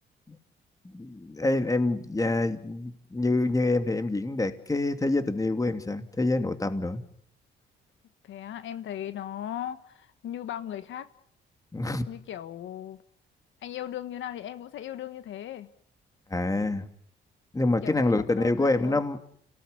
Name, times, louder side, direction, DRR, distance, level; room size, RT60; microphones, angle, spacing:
voice 1, 0.9-7.0 11.7-12.1 16.3-16.9 17.5-19.2, left 2 dB, 15° left, 2.8 m, -26 dB
voice 2, 8.2-11.1 12.1-13.0 13.6-15.7 17.8-19.0, left 11 dB, 75° left, 1.4 m, -37 dB
29.0 x 18.0 x 9.8 m
cardioid pair, 90°, 20 cm